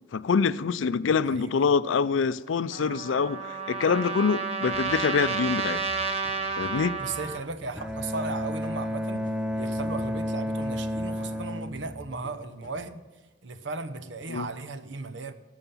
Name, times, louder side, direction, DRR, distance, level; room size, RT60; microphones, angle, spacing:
voice 1, 0.1-5.8 6.6-7.0 14.3-14.5, left 5 dB, 80° left, 0.4 m, -25 dB
voice 2, 1.3-1.7 7.0-9.2 9.5-13.0 13.4-15.3, right 3 dB, 70° right, 0.8 m, -36 dB
Trumpet, 2.7-7.4, right 4 dB, 30° right, 0.8 m, -31 dB
sound 1, 4.7-12.8, left 1 dB, 25° left, 1.9 m, -49 dB
Bowed string instrument, 7.8-12.8, equal, 5° right, 0.6 m, -32 dB
18.5 x 7.1 x 5.5 m
head